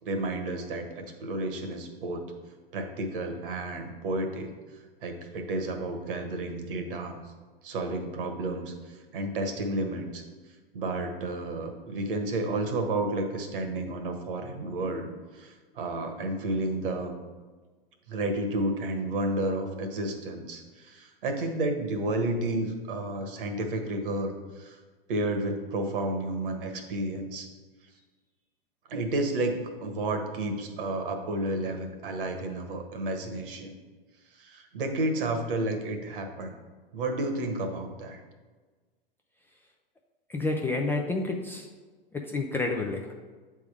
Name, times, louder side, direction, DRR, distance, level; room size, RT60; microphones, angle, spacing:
voice 1, 0.0-2.2 2.7-4.5 5.0-7.1 7.6-10.2 10.7-17.1 18.1-24.8 25.1-27.5 28.9-33.7 34.3-36.5 36.9-38.2, right 2 dB, 60° right, 5 dB, 1.3 m, -31 dB
voice 2, 40.3-41.7 42.1-43.1, left 3 dB, 10° left, 1 dB, 0.3 m, -29 dB
8.0 x 3.6 x 4.9 m, 1.4 s
hypercardioid pair, 110°, 30 cm